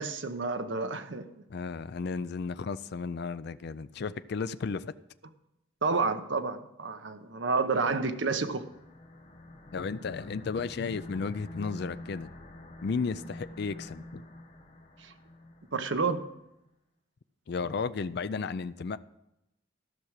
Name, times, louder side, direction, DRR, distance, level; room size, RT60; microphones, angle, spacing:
voice 1, 0.0-1.4 5.8-8.7 15.0-15.1 15.7-16.2, right 4 dB, 65° right, 8 dB, 0.9 m, -30 dB
voice 2, 1.5-4.9 9.7-12.3 12.8-14.2 17.5-19.0, left 5 dB, 55° left, 14 dB, 0.4 m, -34 dB
sound 1, 7.7-16.2, left 1 dB, 35° left, 1.1 m, -48 dB
13.5 x 6.1 x 6.5 m, 0.86 s
head